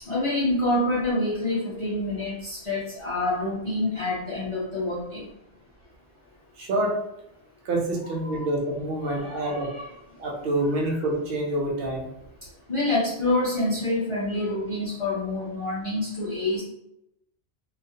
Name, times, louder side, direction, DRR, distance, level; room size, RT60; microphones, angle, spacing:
voice 1, 0.1-5.3 8.2-8.5 9.0-9.9 10.8-10.9 12.7-16.6, left 2 dB, 50° left, -5 dB, 0.4 m, -27 dB
voice 2, 6.6-6.9 7.6-9.7 10.2-12.1, right 1 dB, 60° right, 0 dB, 0.8 m, -27 dB
2.3 x 2.0 x 2.6 m, 0.82 s
omnidirectional pair, 1.2 m